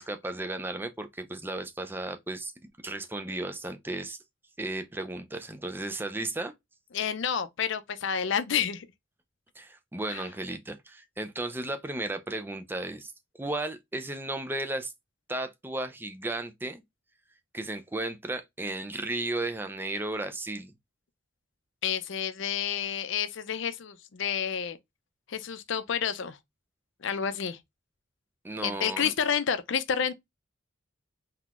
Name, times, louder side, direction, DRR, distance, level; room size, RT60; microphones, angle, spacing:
voice 1, 0.0-2.5 2.8-4.2 4.6-6.5 9.6-13.1 13.4-14.9 15.3-16.8 17.5-20.7 28.4-29.1, right 2 dB, 10° right, 0.4 m, -34 dB
voice 2, 6.9-8.9 10.1-10.2 21.8-24.8 25.3-26.4 27.0-27.6 28.6-30.1, left 7 dB, 65° left, 0.5 m, -29 dB
3.8 x 2.8 x 2.4 m
head